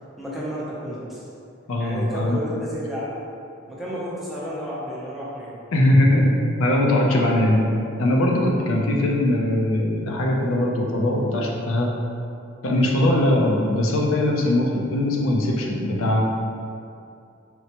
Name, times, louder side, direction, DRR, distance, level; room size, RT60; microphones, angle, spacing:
voice 1, 0.2-1.3 1.8-3.2 3.7-5.6 8.7-8.9, equal, ahead, -8 dB, 0.5 m, -32 dB
voice 2, 1.7-2.4 5.7-6.3 6.6-7.7 8.0-11.9 12.6-16.2, left 1 dB, 75° left, -1 dB, 0.4 m, -20 dB
4.4 x 2.0 x 2.8 m, 2.5 s
head